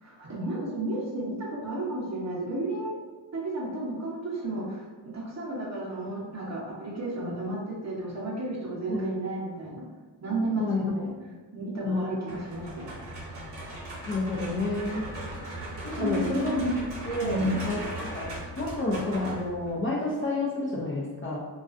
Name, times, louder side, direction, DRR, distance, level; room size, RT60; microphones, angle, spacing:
voice 1, 0.0-3.0 3.3-9.8 10.2-11.1 11.5-12.9 15.9-16.8 17.2-17.7, right 1 dB, 40° right, -4 dB, 0.8 m, -32 dB
voice 2, 10.6-11.1 11.8-12.4 14.1-15.1 15.8-16.5 17.1-21.4, left 2 dB, 30° left, -4 dB, 0.4 m, -30 dB
sound 1, 12.3-19.9, right 1 dB, 70° right, 0.8 m, -38 dB
2.3 x 2.3 x 2.4 m, 1.4 s
cardioid pair, 80°, 42 cm